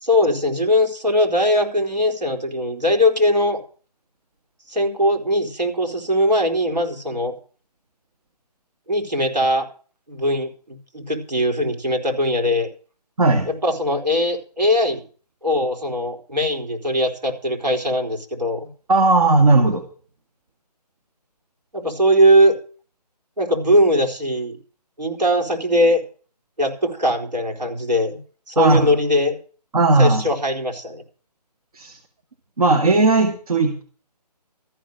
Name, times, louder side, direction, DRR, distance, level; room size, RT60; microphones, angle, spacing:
voice 1, 0.0-3.6 4.7-7.3 8.9-9.7 10.1-12.7 13.5-15.0 15.4-18.7 21.7-22.5 23.4-24.6 25.0-26.0 26.6-28.2 28.5-29.3 30.0-31.0, equal, 85° right, 5 dB, 4.2 m, -20 dB
voice 2, 18.9-19.8 28.6-28.9 29.7-30.2 31.8-32.0 32.6-33.8, right 3 dB, 60° right, 4 dB, 2.2 m, -16 dB
14.0 x 6.5 x 9.1 m, 0.40 s
figure-of-eight pair, 155°, 21 cm